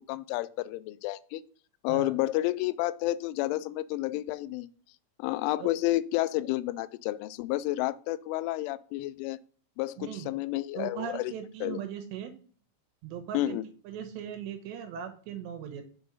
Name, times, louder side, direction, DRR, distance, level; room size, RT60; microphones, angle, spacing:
voice 1, 0.0-1.4 1.8-4.7 5.2-9.4 9.8-11.3 11.6-11.8 13.3-13.7, left 16 dB, 90° left, 15 dB, 3.0 m, -30 dB
voice 2, 10.0-10.3 10.8-12.3 13.0-13.6 13.8-15.8, right 8 dB, 75° right, 6 dB, 3.0 m, -39 dB
7.3 x 5.2 x 6.3 m, 0.43 s
omnidirectional pair, 5.5 m